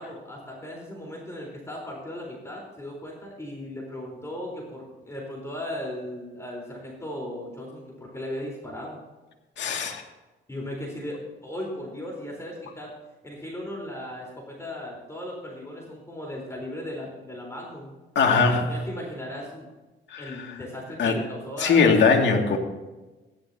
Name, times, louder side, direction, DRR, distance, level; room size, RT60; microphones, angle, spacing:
voice 1, 0.0-9.0 10.5-12.9 13.2-17.9 18.7-19.7 20.2-22.1, left 1 dB, 15° left, -2 dB, 4.1 m, -37 dB
voice 2, 9.6-10.0 18.2-18.8 20.1-20.6 21.0-21.2 21.6-22.6, left 5 dB, 65° left, 2 dB, 2.3 m, -21 dB
16.0 x 11.5 x 2.9 m, 1.2 s
cardioid pair, 90°, 20 cm